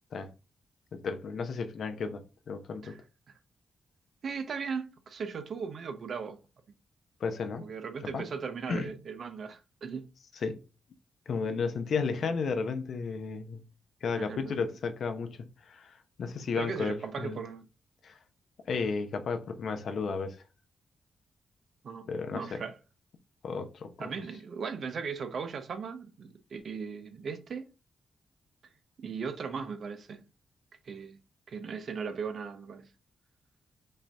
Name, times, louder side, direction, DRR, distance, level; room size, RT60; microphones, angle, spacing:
voice 1, 0.9-3.0 7.2-7.6 8.1-8.2 8.7-8.9 10.4-10.6 11.3-13.6 14.0-17.4 18.0-18.2 18.6-20.4 22.1-22.6 23.4-24.1, left 5 dB, 70° left, 0.9 m, -33 dB
voice 2, 4.2-6.4 7.6-10.1 14.2-14.5 16.5-17.7 21.8-22.7 24.0-27.7 29.0-30.2 30.8-31.2 31.5-32.8, right 5 dB, 65° right, 0.8 m, -37 dB
5.5 x 2.7 x 3.4 m
cardioid pair, 60°, 0 cm